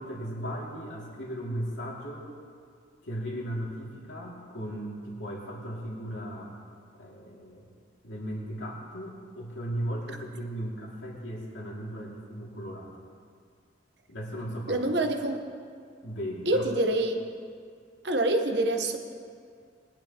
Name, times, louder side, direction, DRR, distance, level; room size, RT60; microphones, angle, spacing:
voice 1, 0.0-2.3 3.0-6.5 7.0-7.7 8.0-12.9 14.1-14.8 16.0-16.6, equal, 90° left, -3 dB, 2.3 m, -36 dB
voice 2, 14.7-15.4 16.5-17.2 18.0-19.0, right 1 dB, 60° right, 5 dB, 1.0 m, -26 dB
20.5 x 10.5 x 2.9 m, 2.1 s
head